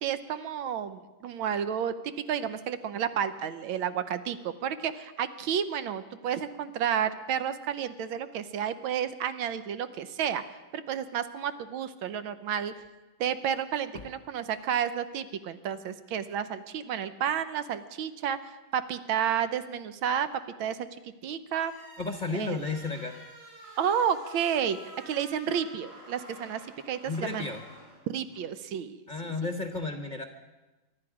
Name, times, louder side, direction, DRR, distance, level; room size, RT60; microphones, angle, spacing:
voice 1, 0.0-10.4 10.7-12.7 13.2-20.3 20.6-21.7 22.3-22.6 23.8-24.8 25.1-27.5 28.1-29.3, right 8 dB, 90° right, 11 dB, 1.6 m, -31 dB
sound 1, 21.5-28.5, right 1 dB, 60° right, 8.9 m, -49 dB
voice 2, 22.0-23.2 27.0-27.6 29.1-30.2, left 3 dB, 35° left, 5 dB, 0.7 m, -33 dB
24.0 x 12.0 x 4.9 m, 1.1 s
omnidirectional pair, 2.2 m